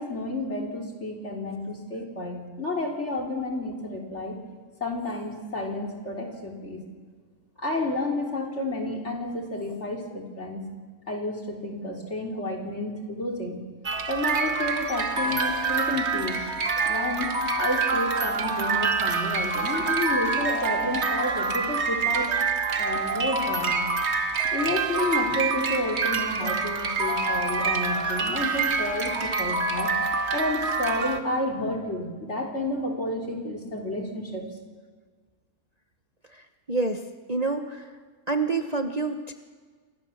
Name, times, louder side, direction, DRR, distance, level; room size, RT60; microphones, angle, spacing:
voice 1, 0.0-4.4 4.8-6.8 7.6-10.7 11.1-13.6 14.1-16.4 16.9-22.4 22.8-23.8 24.5-29.9 30.3-34.4, left 1 dB, 50° left, 1 dB, 3.8 m, -30 dB
sound 1, 13.9-31.2, right 4 dB, 50° right, 1.7 m, -26 dB
voice 2, 36.3-37.0 37.3-37.9 38.3-39.3, right 3 dB, 30° right, 5 dB, 1.2 m, -28 dB
29.5 x 24.0 x 7.2 m, 1.5 s
omnidirectional pair, 1.5 m